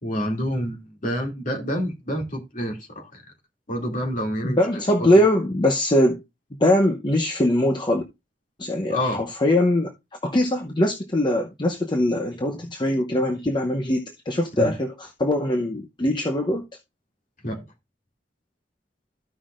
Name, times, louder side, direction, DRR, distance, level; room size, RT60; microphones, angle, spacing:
voice 1, 0.0-3.2 3.7-5.1 8.9-9.2 14.6-14.7 17.4-17.6, equal, 45° left, 2.5 m, -28 dB
voice 2, 4.4-6.2 6.6-8.0 8.6-9.9 10.2-16.7, left 1 dB, 25° left, 0.8 m, -22 dB
14.5 x 5.7 x 2.5 m
head